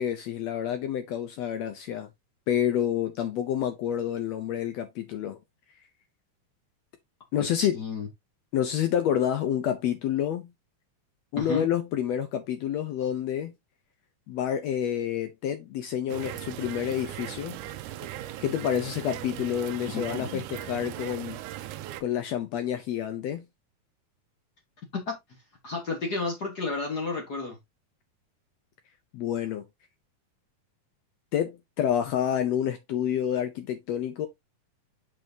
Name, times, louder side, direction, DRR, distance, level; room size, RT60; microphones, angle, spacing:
voice 1, 0.0-2.1 2.5-5.4 7.3-7.7 8.5-10.5 11.3-13.5 14.3-17.6 18.4-21.4 22.0-23.5 29.1-29.6 31.3-34.3, left 10 dB, 80° left, 1.6 m, -28 dB
voice 2, 7.4-8.1 11.4-11.7 19.9-20.4 24.9-25.2 25.6-27.6, left 3 dB, 50° left, 1.3 m, -32 dB
sound 1, 16.1-22.0, right 13 dB, 80° right, 2.0 m, -38 dB
6.7 x 6.1 x 2.8 m
omnidirectional pair, 3.7 m